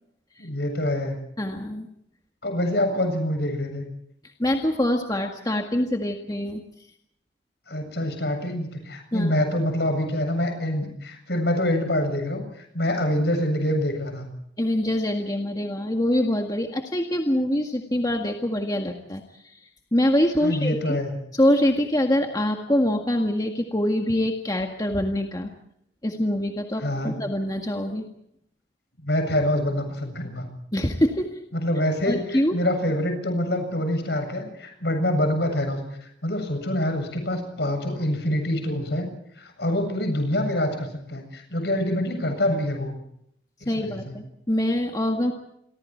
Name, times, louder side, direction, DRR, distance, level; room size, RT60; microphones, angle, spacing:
voice 1, 0.4-1.2 2.4-3.8 7.7-14.3 20.4-21.1 26.8-27.1 29.0-30.4 31.5-39.1 39.3-43.0 43.6-44.1, left 1 dB, 65° left, 6 dB, 7.6 m, -26 dB
voice 2, 1.4-1.9 4.4-6.6 9.1-9.3 14.6-19.6 19.9-21.0 21.3-25.5 26.0-28.1 30.7-31.4 32.1-32.6 43.7-45.3, left 1 dB, 20° left, 3 dB, 1.8 m, -24 dB
29.0 x 24.0 x 4.6 m, 0.71 s
head